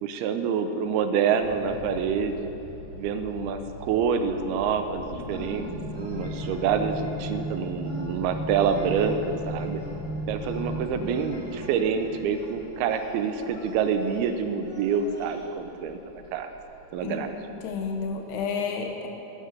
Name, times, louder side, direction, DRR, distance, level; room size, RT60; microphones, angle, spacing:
voice 1, 0.0-2.5 2.9-9.8 10.3-16.0 16.3-16.5 16.9-17.4, right 6 dB, 80° right, 8 dB, 2.6 m, -27 dB
sound 1, 1.4-18.4, left 2 dB, 60° left, 2.2 m, -48 dB
sound 2, 4.6-12.8, equal, 40° right, 4.4 m, -35 dB
sound 3, 5.2-15.4, left 1 dB, 20° left, 3.5 m, -48 dB
voice 2, 17.6-19.1, left 5 dB, 80° left, 3 dB, 3.2 m, -30 dB
12.0 x 11.0 x 6.7 m, 3.0 s
omnidirectional pair, 4.5 m